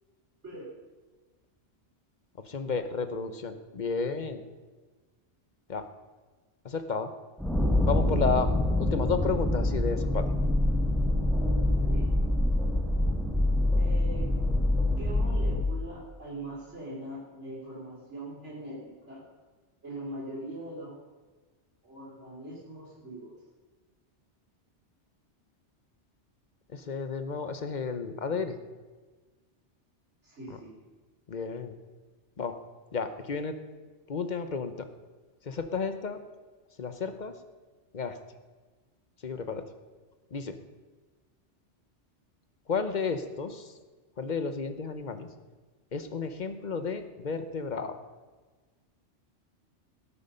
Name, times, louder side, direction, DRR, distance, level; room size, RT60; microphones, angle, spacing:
voice 1, 2.4-4.4 5.7-5.9 6.6-7.1 7.8-8.5 8.8-10.3 26.7-28.6 31.3-31.8 32.4-32.6 32.9-33.6 34.1-34.9 35.4-36.2 36.8-37.4 37.9-38.2 39.2-39.6 40.3-40.6 42.7-43.7 44.2-45.3 45.9-48.0, left 5 dB, 40° left, 9 dB, 1.0 m, -32 dB
sound 1, 7.4-15.7, left 1 dB, ahead, 1.1 m, -25 dB
voice 2, 11.5-12.1 13.8-14.3 15.0-19.2 19.8-21.0 21.8-23.3 30.2-30.7, right 1 dB, 80° right, -6 dB, 4.0 m, -41 dB
18.5 x 8.4 x 5.6 m, 1.3 s
omnidirectional pair, 1.2 m